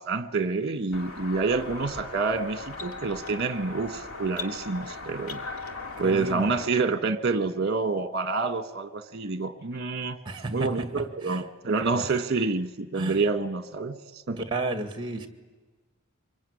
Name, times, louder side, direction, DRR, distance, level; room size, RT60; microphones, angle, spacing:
voice 1, 0.0-5.4 6.0-10.2 10.5-14.0 14.3-14.4, right 4 dB, 45° right, 11 dB, 1.4 m, -28 dB
sound 1, 0.9-6.7, left 3 dB, 80° left, 2.3 m, -39 dB
voice 2, 6.0-6.5 10.3-11.4 11.9-12.1 12.9-13.2 14.4-15.3, right 2 dB, 20° right, 9 dB, 1.9 m, -33 dB
25.0 x 22.5 x 9.9 m, 1.3 s
head